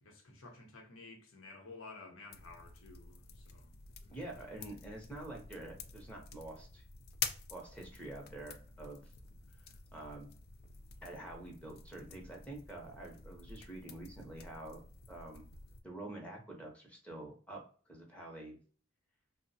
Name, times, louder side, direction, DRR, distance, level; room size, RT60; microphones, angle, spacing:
voice 1, 0.0-3.8, left 3 dB, 85° left, 0.8 m, -53 dB
sound 1, 2.3-15.8, left 7 dB, 50° left, 0.3 m, -48 dB
voice 2, 4.1-6.8 7.5-9.1 9.9-10.3 11.0-14.8 15.1-15.5 15.8-18.6, right 1 dB, 5° left, 0.6 m, -47 dB
2.8 x 2.0 x 2.6 m
head